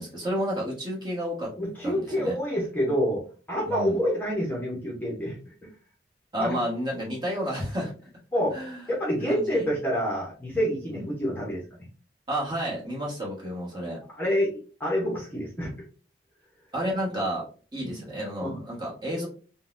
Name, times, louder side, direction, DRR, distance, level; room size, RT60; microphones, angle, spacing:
voice 1, 0.0-1.5 1.8-2.3 3.7-4.0 6.3-7.9 8.5-8.8 9.2-9.6 10.9-11.1 12.3-14.0 16.7-17.4 17.7-19.3, equal, 25° right, -4 dB, 1.2 m, -31 dB
voice 2, 1.6-3.2 3.5-5.4 6.4-6.6 8.3-8.6 8.9-11.6 14.1-14.5 14.8-15.7 17.7-17.9 18.4-18.6, equal, 10° left, -4 dB, 0.7 m, -27 dB
3.8 x 2.2 x 2.5 m, 0.39 s
head